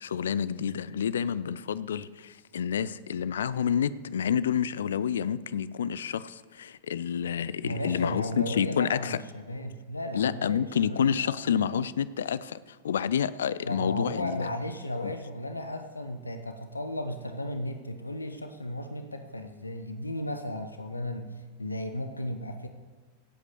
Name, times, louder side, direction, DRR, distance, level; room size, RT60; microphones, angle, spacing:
voice 1, 0.0-9.2 10.1-14.5 15.0-15.1, left 8 dB, 65° left, 17 dB, 0.5 m, -29 dB
voice 2, 7.6-11.4 13.7-22.7, left 1 dB, 80° left, 7 dB, 1.0 m, -35 dB
17.5 x 8.2 x 6.9 m, 1.4 s
figure-of-eight pair, 90°, 0 cm